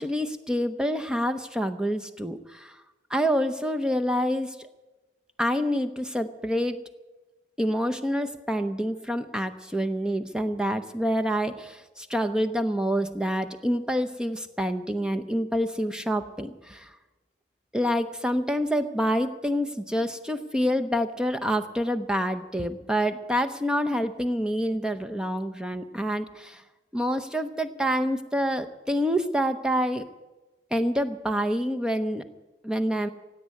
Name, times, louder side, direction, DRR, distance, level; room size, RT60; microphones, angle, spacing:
voice 1, 0.0-2.8 3.1-4.7 5.4-6.8 7.6-16.9 17.7-26.6 26.9-30.1 30.7-32.2 32.6-33.1, equal, 5° right, 8 dB, 0.7 m, -27 dB
16.5 x 8.4 x 9.8 m, 1.1 s
head